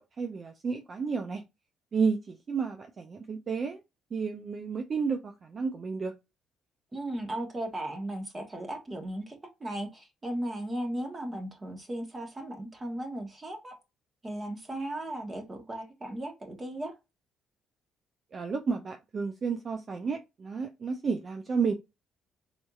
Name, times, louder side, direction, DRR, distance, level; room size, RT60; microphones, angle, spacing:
voice 1, 0.0-1.4 1.9-3.8 4.1-6.1 18.3-21.7, right 5 dB, 45° right, 0.6 m, -31 dB
voice 2, 6.9-9.3 9.6-13.7 14.2-16.9, right 1 dB, 25° right, 1.2 m, -36 dB
4.3 x 2.7 x 2.3 m
supercardioid pair, 65°, 0 cm